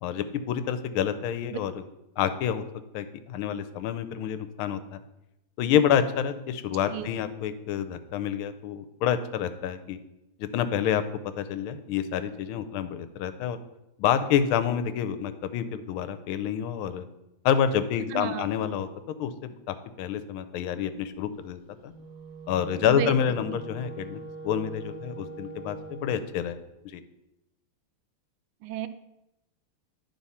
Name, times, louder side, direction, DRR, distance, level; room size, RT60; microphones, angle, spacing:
voice 1, 0.0-1.8 2.2-2.6 2.9-5.0 5.6-10.0 10.4-11.0 11.4-13.6 14.0-17.0 17.4-18.9 19.2-21.9 22.5-26.6 26.8-27.0, left 9 dB, 80° left, 11 dB, 1.4 m, -28 dB
voice 2, 18.1-18.5 22.8-23.1 28.6-28.9, right 11 dB, 80° right, 12 dB, 1.4 m, -32 dB
Wind instrument woodwind instrument, 21.8-26.3, right 3 dB, 65° right, 1.7 m, -42 dB
11.0 x 3.7 x 4.2 m, 0.90 s
omnidirectional pair, 2.4 m